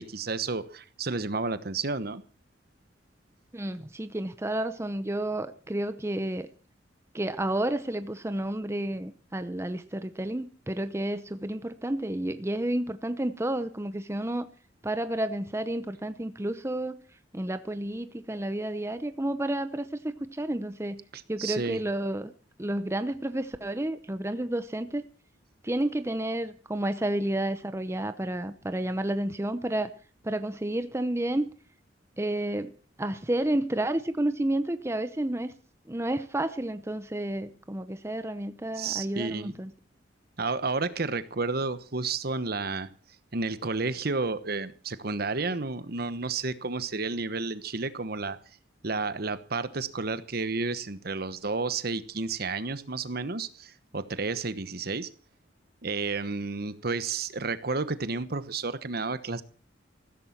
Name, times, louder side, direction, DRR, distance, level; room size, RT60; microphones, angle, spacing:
voice 1, 0.0-2.2 21.1-21.8 38.7-39.5 40.4-42.9 43.3-48.4 48.8-55.1 55.8-59.4, right 3 dB, 55° right, 1.1 m, -31 dB
voice 2, 3.5-6.5 7.1-14.5 14.8-16.9 17.3-21.0 21.3-22.3 22.6-25.0 25.6-29.9 30.2-31.5 32.2-32.7 33.0-35.5 35.9-39.7, right 1 dB, 15° right, 0.8 m, -31 dB
15.5 x 13.5 x 5.9 m
head